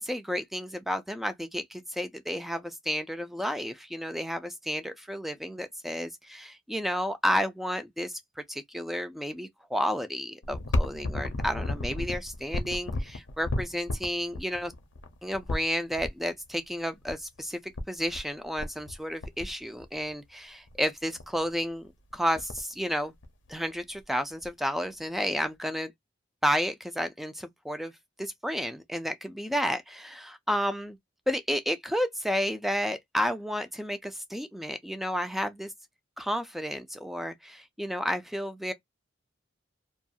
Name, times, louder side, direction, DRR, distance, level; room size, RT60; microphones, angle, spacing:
voice 1, 0.0-14.7 15.2-17.6 17.9-23.1 23.5-25.9 26.4-27.9 28.2-31.0 31.3-35.7 36.2-38.7, equal, ahead, 0.3 m, -31 dB
sound 1, 10.4-16.1 17.0-17.1 17.4-17.5 17.7-18.3 18.6-19.0 19.2-20.1 20.7-20.8 21.2-21.5 21.8-21.9 22.1-22.7 23.2-24.0 24.4-24.5 25.4-25.5, left 1 dB, 70° left, 0.6 m, -33 dB
2.4 x 2.2 x 2.6 m
head